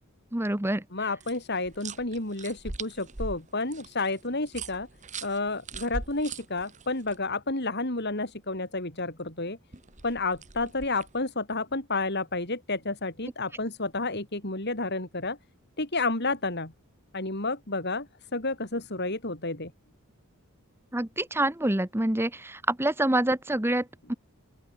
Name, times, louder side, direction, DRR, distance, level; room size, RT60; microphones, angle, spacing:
voice 1, 0.3-0.8 20.9-24.1, right 1 dB, 10° right, 1.0 m, -26 dB
voice 2, 0.9-4.9 5.2-9.6 10.0-15.4 15.8-16.7 17.1-18.1 18.3-19.7, left 3 dB, 50° left, 4.2 m, -30 dB
sound 1, 1.2-7.2 9.7-11.2, right 3 dB, 35° right, 2.0 m, -40 dB
open air
head